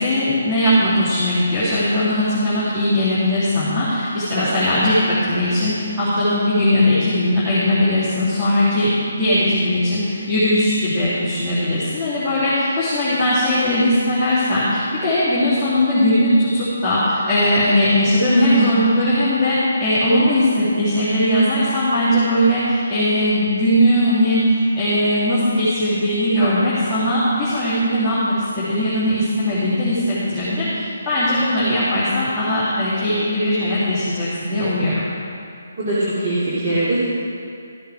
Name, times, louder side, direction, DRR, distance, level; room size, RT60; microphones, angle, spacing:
voice 1, 0.0-35.0, left 1 dB, ahead, -18 dB, 2.8 m, -19 dB
voice 2, 18.2-18.8 35.8-37.0, right 2 dB, 35° right, -10 dB, 2.7 m, -20 dB
14.5 x 8.0 x 4.8 m, 2.5 s
hypercardioid pair, 165°, 0 cm